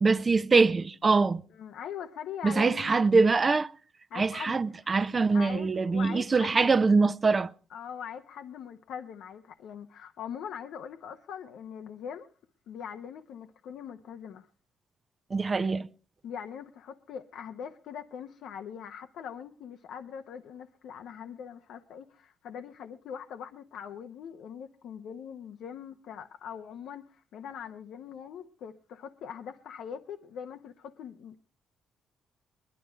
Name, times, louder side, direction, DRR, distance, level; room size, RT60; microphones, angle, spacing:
voice 1, 0.0-1.4 2.4-3.7 4.1-7.5 15.3-15.9, right 4 dB, 30° right, 0.7 m, -23 dB
voice 2, 1.6-2.9 4.1-4.6 5.3-6.7 7.7-12.3 12.7-14.5 16.2-31.4, left 8 dB, 80° left, 0.9 m, -42 dB
20.5 x 11.5 x 4.5 m
cardioid pair, 90°, 0 cm